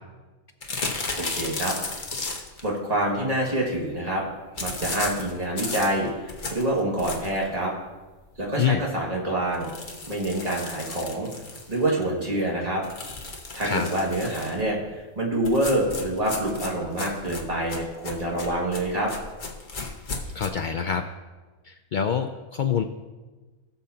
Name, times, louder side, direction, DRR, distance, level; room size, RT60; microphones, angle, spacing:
sound 1, 0.6-2.7 4.6-7.5 7.9-8.0 8.4-8.5 8.8-8.9 9.5-12.0 12.8-14.6 15.4-20.5, left 3 dB, 35° left, 1.1 m, -34 dB
voice 1, 1.2-1.7 2.6-4.2 4.6-7.7 8.4-9.7 10.1-11.3 11.7-12.8 13.5-19.1, right 1 dB, 25° right, -4 dB, 2.1 m, -26 dB
voice 2, 20.3-21.0 21.6-22.8, left 7 dB, 85° left, 6 dB, 0.4 m, -25 dB
17.5 x 7.0 x 2.9 m, 1.2 s
omnidirectional pair, 1.5 m